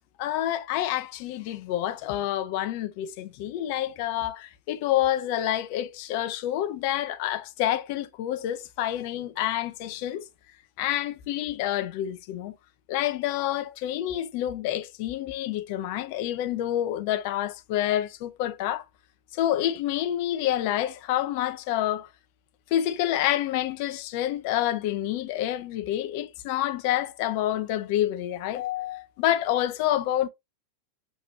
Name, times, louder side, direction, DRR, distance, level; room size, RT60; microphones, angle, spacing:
voice 1, 0.2-10.2 10.8-12.5 12.9-18.8 19.3-22.1 22.7-30.3, left 12 dB, 45° left, 0.6 m, -28 dB
6.7 x 3.0 x 2.6 m
figure-of-eight pair, 90°, 0 cm